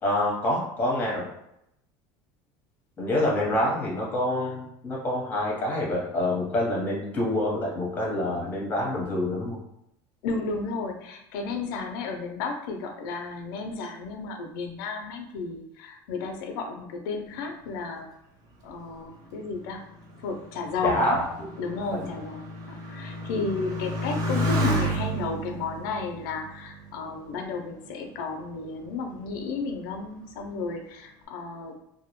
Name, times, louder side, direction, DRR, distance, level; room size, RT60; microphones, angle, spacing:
voice 1, 0.0-1.2 3.0-9.6 20.8-21.2 21.9-22.1, left 1 dB, 15° left, -4 dB, 0.8 m, -26 dB
voice 2, 10.2-18.1 18.6-19.9 20.2-21.2 21.6-31.8, left 4 dB, 85° left, 4 dB, 0.4 m, -33 dB
Motorcycle, 18.7-27.7 28.4-29.0, equal, 35° right, 0.5 m, -32 dB
2.2 x 2.0 x 2.9 m, 0.80 s
cardioid pair, 160°, 11 cm